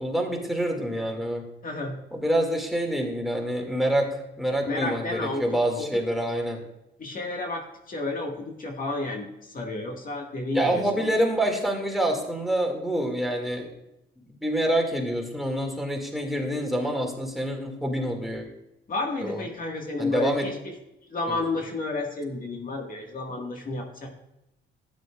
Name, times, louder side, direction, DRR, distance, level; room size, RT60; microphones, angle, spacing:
voice 1, 0.0-1.5 2.1-6.6 10.5-13.7 14.3-18.4 19.2-19.4 20.0-20.5 21.3-21.4, right 1 dB, ahead, 3 dB, 2.2 m, -27 dB
voice 2, 1.6-2.0 4.6-5.9 7.0-11.1 18.9-20.7 21.1-24.1, left 2 dB, 45° left, 2 dB, 1.7 m, -31 dB
12.0 x 9.7 x 2.4 m, 0.89 s
cardioid pair, 90°, 20 cm